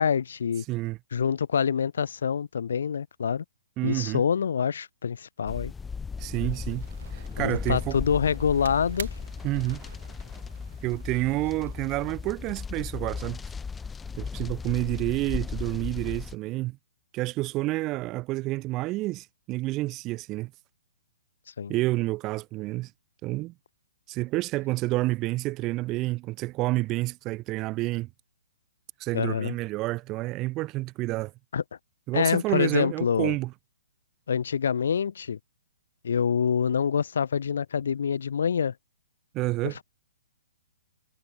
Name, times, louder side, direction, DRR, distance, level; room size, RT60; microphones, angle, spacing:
voice 1, 0.0-0.6 1.1-3.4 3.8-5.7 7.4-9.1 21.6-21.7 29.1-29.5 31.5-31.6 32.1-33.3 34.3-35.4 36.0-38.7 39.6-39.8, left 7 dB, 70° left, 3.8 m, -26 dB
voice 2, 3.8-4.2 6.2-6.9 7.1-8.0 9.4-9.8 10.8-13.4 14.2-16.8 17.1-20.5 21.7-22.9 23.2-23.5 24.1-28.1 29.0-31.3 32.1-33.5 39.3-39.8, right 19 dB, 20° right, 1.6 m, -29 dB
sound 1, 5.5-16.3, left 5 dB, 5° left, 2.5 m, -36 dB
sound 2, 6.2-12.1, right 8 dB, 65° right, 6.8 m, -47 dB
hypercardioid pair, 165°, 0 cm